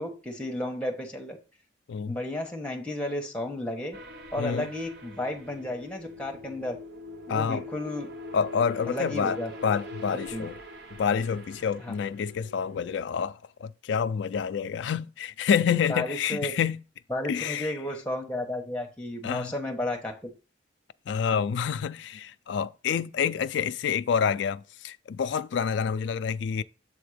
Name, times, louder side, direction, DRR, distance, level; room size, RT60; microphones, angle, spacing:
voice 1, 0.0-1.4 2.1-4.0 4.3-6.8 7.3-8.1 8.9-9.5 10.3-10.5 11.8-11.9 15.9-16.5 17.1-20.3, left 1 dB, 5° left, 1.2 m, -33 dB
sound 1, 3.9-12.9, left 1 dB, 55° right, 0.8 m, -43 dB
voice 2, 4.4-4.7 7.3-7.6 8.3-9.4 9.6-10.6 11.0-16.8 17.3-17.7 19.2-19.5 21.1-26.6, left 7 dB, 65° left, 0.3 m, -28 dB
7.6 x 3.5 x 4.9 m
head